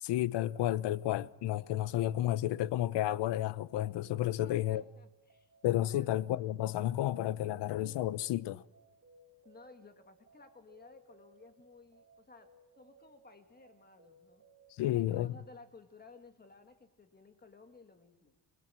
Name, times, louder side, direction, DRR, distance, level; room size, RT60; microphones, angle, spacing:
voice 1, 0.0-4.8 5.6-8.6 14.8-15.3, left 14 dB, 80° left, 1.0 m, -31 dB
sound 1, 1.6-14.8, right 3 dB, 35° right, 3.5 m, -64 dB
voice 2, 4.4-5.5 6.0-6.1 9.4-12.5 12.8-14.4 14.9-18.3, left 3 dB, 20° left, 1.9 m, -57 dB
28.0 x 20.5 x 7.6 m
cardioid pair, 160°, 41 cm